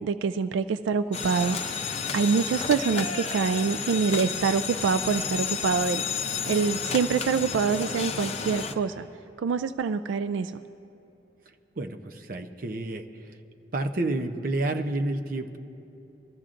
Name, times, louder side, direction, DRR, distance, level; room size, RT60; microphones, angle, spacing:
voice 1, 0.0-1.8 2.1-6.0 6.5-9.1 9.4-10.5, right 5 dB, 90° right, 11 dB, 0.3 m, -25 dB
sound 1, 1.1-8.7, left 6 dB, 35° left, 0.5 m, -31 dB
voice 2, 11.8-13.4 13.7-15.6, right 2 dB, 50° right, 5 dB, 0.6 m, -30 dB
23.5 x 13.5 x 2.5 m, 2.9 s
head